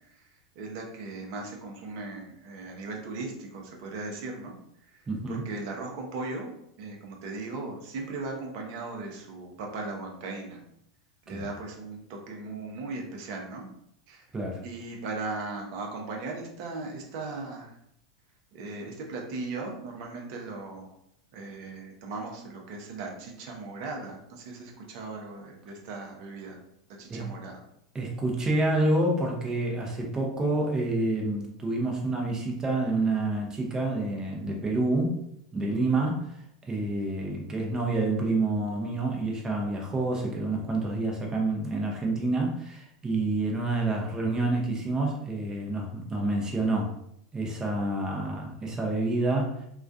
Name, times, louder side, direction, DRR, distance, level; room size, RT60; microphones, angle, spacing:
voice 1, 0.6-4.5 5.3-6.5 6.8-10.6 11.3-13.7 14.1-14.2 14.6-17.7 18.5-20.9 21.3-26.6 27.0-27.6, right 3 dB, 55° right, 1 dB, 0.7 m, -37 dB
voice 2, 5.1-5.4 11.3-11.5 14.3-14.6 27.1-27.3 27.9-35.2 35.5-36.3 36.6-46.9 47.3-49.7, right 2 dB, 20° right, 0 dB, 0.7 m, -28 dB
2.3 x 2.2 x 2.6 m, 0.74 s
hypercardioid pair, 95°, 3 cm